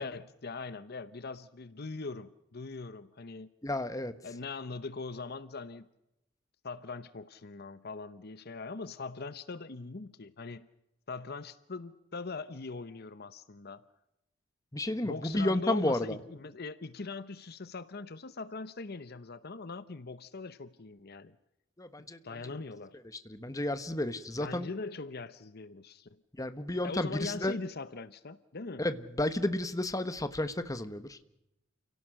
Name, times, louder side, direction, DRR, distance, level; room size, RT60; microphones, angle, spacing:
voice 1, 0.0-3.5 4.2-5.9 6.6-10.7 11.1-13.8 15.0-21.4 22.2-23.0 24.4-26.2 26.8-28.8, left 3 dB, 55° left, 0.8 m, -41 dB
voice 2, 3.6-4.2 14.7-16.2 21.8-22.5 23.2-24.7 26.4-27.6 28.8-31.2, left 1 dB, 15° left, 1.2 m, -32 dB
29.5 x 17.0 x 6.5 m
head